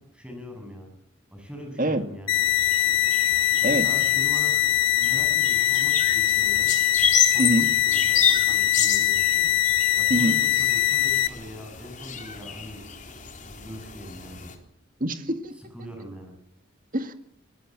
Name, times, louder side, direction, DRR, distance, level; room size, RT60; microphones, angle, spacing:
voice 1, 0.1-0.9 1.3-2.3 3.6-4.6 5.0-6.7 7.3-9.3 9.9-12.8 13.4-14.5 15.6-16.3, equal, 5° right, 3 dB, 7.1 m, -41 dB
sound 1, 2.3-11.3, left 14 dB, 65° left, 1.6 m, -22 dB
sound 2, 2.3-14.5, left 7 dB, 40° left, 3.9 m, -30 dB
voice 2, 7.4-7.7 10.1-10.4 15.0-15.5 16.9-17.1, right 1 dB, 40° right, 8 dB, 2.1 m, -24 dB
24.5 x 20.0 x 7.5 m, 0.68 s
head